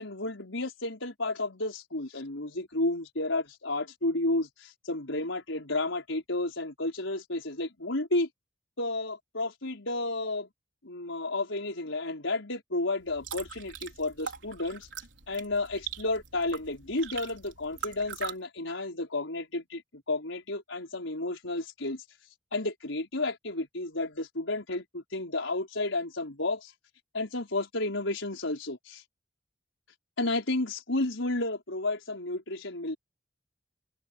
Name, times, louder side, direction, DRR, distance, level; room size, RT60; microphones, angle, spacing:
voice 1, 0.0-8.3 8.8-10.5 10.8-14.9 15.3-22.0 22.5-26.7 27.1-29.0 30.2-33.0, left 2 dB, 85° left, 5.1 m, -32 dB
sound 1, 13.0-18.3, right 7 dB, 70° right, 4.4 m, -42 dB
open air
head